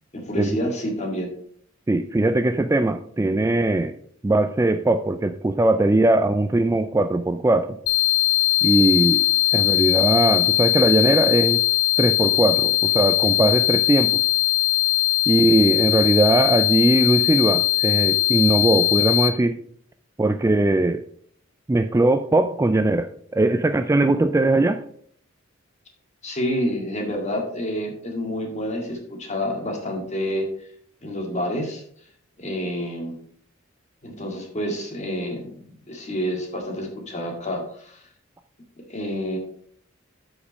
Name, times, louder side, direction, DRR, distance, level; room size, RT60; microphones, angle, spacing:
voice 1, 0.1-1.3 26.2-30.5 31.0-31.8 32.4-33.2 34.0-38.1 38.8-39.4, equal, 35° left, 1 dB, 2.0 m, -28 dB
voice 2, 1.9-3.9 4.2-7.8 8.6-9.2 9.5-11.6 12.0-14.2 15.3-19.6 20.2-21.0 21.7-24.8, right 2 dB, 15° right, 8 dB, 0.3 m, -20 dB
sound 1, 7.9-19.3, left 17 dB, 80° left, 0.7 m, -20 dB
8.3 x 5.1 x 5.2 m, 0.62 s
head